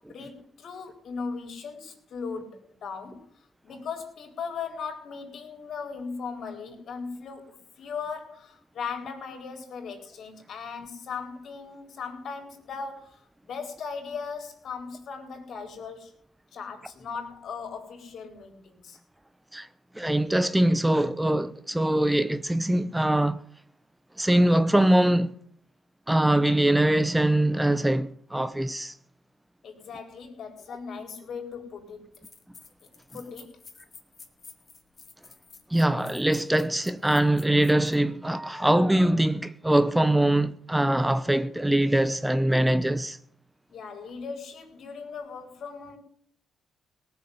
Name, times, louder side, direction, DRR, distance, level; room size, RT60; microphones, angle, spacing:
voice 1, 0.1-16.1 16.5-19.0 29.6-32.2 33.1-33.6 43.7-46.0, left 5 dB, 60° left, 4.2 m, -38 dB
voice 2, 19.9-23.4 24.2-25.3 26.1-29.0 35.7-43.2, right 1 dB, 10° right, 0.7 m, -23 dB
sound 1, 31.6-31.7 32.1-38.0, left 5 dB, 40° left, 3.0 m, -50 dB
18.5 x 7.0 x 9.4 m
cardioid pair, 90°, 0 cm